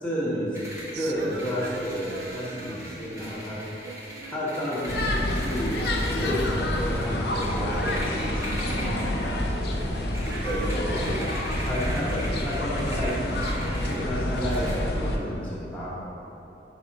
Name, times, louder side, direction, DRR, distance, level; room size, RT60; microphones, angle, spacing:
voice 1, 0.0-0.6 1.0-3.7 4.3-5.8 6.1-9.1 10.4-11.3 11.6-13.3 13.8-15.9, equal, 10° left, -9 dB, 1.3 m, -31 dB
sound 1, 0.5-14.8, equal, 15° right, 1.1 m, -40 dB
Female singing, 0.9-3.3 3.8-5.6 5.8-8.7 9.4-14.0, right 5 dB, 70° right, 0.3 m, -44 dB
sound 2, 4.9-15.2, left 1 dB, 65° left, 0.6 m, -28 dB
5.3 x 5.0 x 5.4 m, 2.9 s
head